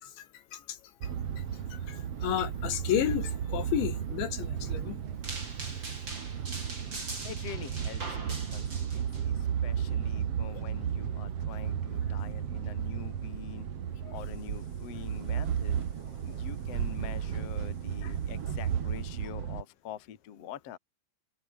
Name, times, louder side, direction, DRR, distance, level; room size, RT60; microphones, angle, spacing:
voice 1, 0.0-1.1 1.4-1.5 1.7-5.0 14.0-14.2 18.0-18.1, left 10 dB, 80° left, 4.6 m, -33 dB
sound 1, 1.0-19.6, right 8 dB, 50° right, 1.9 m, -34 dB
sound 2, 5.2-9.2, right 2 dB, 25° right, 7.6 m, -42 dB
voice 2, 7.0-13.7 14.1-15.8 16.3-20.8, left 9 dB, 45° left, 2.4 m, -45 dB
omnidirectional pair, 5.1 m